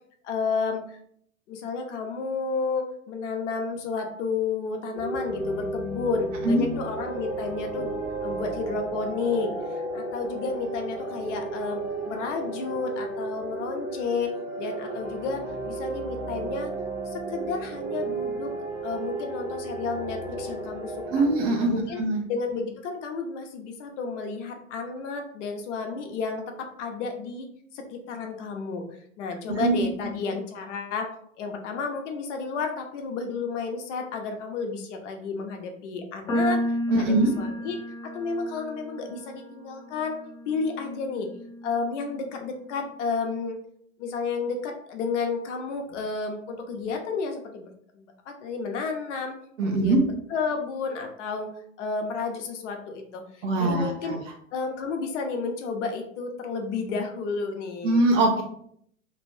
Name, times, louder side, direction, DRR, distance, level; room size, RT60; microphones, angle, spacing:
voice 1, 0.2-1.0 1.5-7.9 8.2-9.5 9.9-16.7 17.1-18.5 18.8-21.2 21.6-22.0 22.3-28.8 29.2-31.1 31.4-37.8 38.0-40.2 40.4-41.3 41.6-43.6 44.0-51.5 51.8-53.2 53.6-54.2 54.5-58.1, left 4 dB, 60° left, 4 dB, 0.8 m, -31 dB
sound 1, 4.9-21.5, right 2 dB, 20° right, 0.9 m, -33 dB
voice 2, 21.1-22.2 29.6-29.7 36.9-37.3 49.6-50.0 53.4-54.1 57.8-58.4, right 2 dB, 65° right, 1 dB, 1.1 m, -22 dB
sound 2, 36.3-42.6, equal, 10° left, 0.4 m, -33 dB
3.0 x 2.5 x 3.2 m, 0.66 s
figure-of-eight pair, 95°, 41 cm